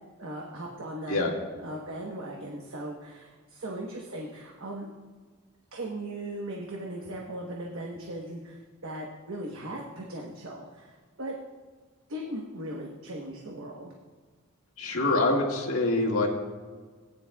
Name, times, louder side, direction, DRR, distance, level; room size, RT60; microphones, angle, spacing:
voice 1, 0.2-1.2 1.6-4.9 5.7-11.3 12.1-13.9, right 1 dB, 70° right, -1 dB, 1.1 m, -38 dB
voice 2, 14.8-16.3, left 2 dB, 85° left, -2 dB, 1.8 m, -25 dB
17.0 x 10.0 x 2.3 m, 1.5 s
head